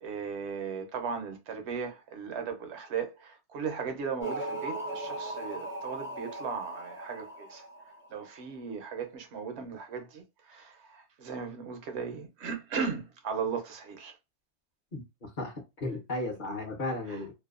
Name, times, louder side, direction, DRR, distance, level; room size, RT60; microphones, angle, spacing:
voice 1, 0.0-7.7 8.1-14.2 17.1-17.2, right 6 dB, 75° right, 0.9 m, -37 dB
sound 1, 4.2-8.4, right 1 dB, 15° left, 0.5 m, -38 dB
voice 2, 14.9-17.3, left 2 dB, 50° left, 0.8 m, -35 dB
2.6 x 2.1 x 2.4 m
omnidirectional pair, 1.1 m